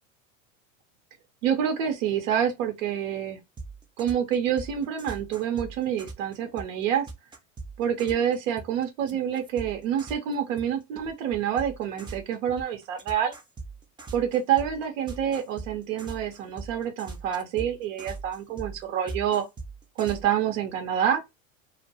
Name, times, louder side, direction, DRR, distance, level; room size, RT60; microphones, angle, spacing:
voice 1, 1.4-3.4 4.0-7.1 7.8-13.3 14.1-19.4 20.0-21.2, right 9 dB, 75° right, 0.8 m, -27 dB
sound 1, 3.6-10.6 11.0-20.2, right 3 dB, 10° right, 0.5 m, -40 dB
2.2 x 2.2 x 2.7 m
hypercardioid pair, 100°, 39 cm